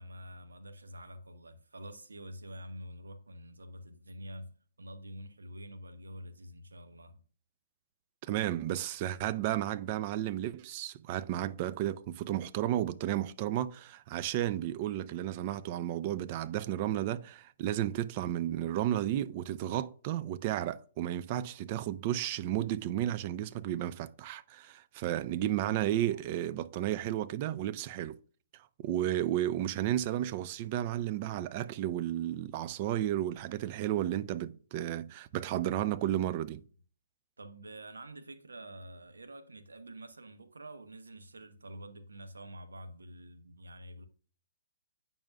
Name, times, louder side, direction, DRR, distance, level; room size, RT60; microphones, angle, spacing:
voice 1, 0.0-7.2 26.1-26.2 37.4-44.1, equal, 80° right, 0.9 m, -47 dB
voice 2, 8.3-28.2 28.8-36.6, right 12 dB, 40° right, 0.4 m, -33 dB
8.7 x 5.5 x 2.3 m
figure-of-eight pair, 125°, 0 cm